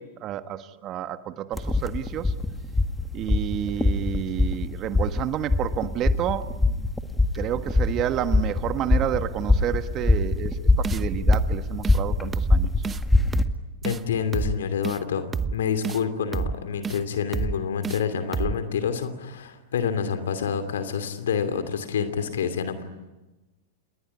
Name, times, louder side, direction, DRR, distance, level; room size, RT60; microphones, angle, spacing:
voice 1, 0.0-2.3 3.1-6.9 7.3-12.7, right 11 dB, 40° right, 10 dB, 1.4 m, -30 dB
sound 1, 1.5-13.4, left 2 dB, 10° left, 2.1 m, -24 dB
Thorns to the Beat, 10.8-11.0 11.3-11.6 11.8-12.0 12.3-12.6 12.8-13.0 13.3-13.6 13.8-14.0 14.3-14.6 14.8-15.0 15.3-15.6 15.8-16.0 16.3-16.6 16.8-17.0 17.3-17.6 17.8-18.0 18.3-18.6, right 6 dB, 20° right, 0.9 m, -28 dB
voice 2, 13.8-15.3 15.5-22.8, left 7 dB, 75° left, 9 dB, 2.7 m, -27 dB
28.0 x 21.5 x 9.7 m, 1.1 s
hypercardioid pair, 100°, 0 cm